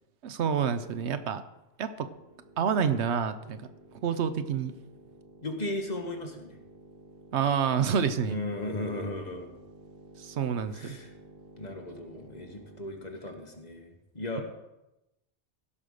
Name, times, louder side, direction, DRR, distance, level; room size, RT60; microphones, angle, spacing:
voice 1, 0.2-1.4 1.8-2.1 2.6-3.6 4.0-4.7 7.3-8.4 10.2-11.0, right 7 dB, 80° right, 11 dB, 1.0 m, -28 dB
sound 1, 2.1-13.1, right 1 dB, 60° right, 2.1 m, -53 dB
voice 2, 5.4-6.6 8.3-9.5 10.7-11.1 11.6-14.4, left 2 dB, 40° left, 3 dB, 1.7 m, -36 dB
15.5 x 5.5 x 6.5 m, 0.95 s
omnidirectional pair, 1.1 m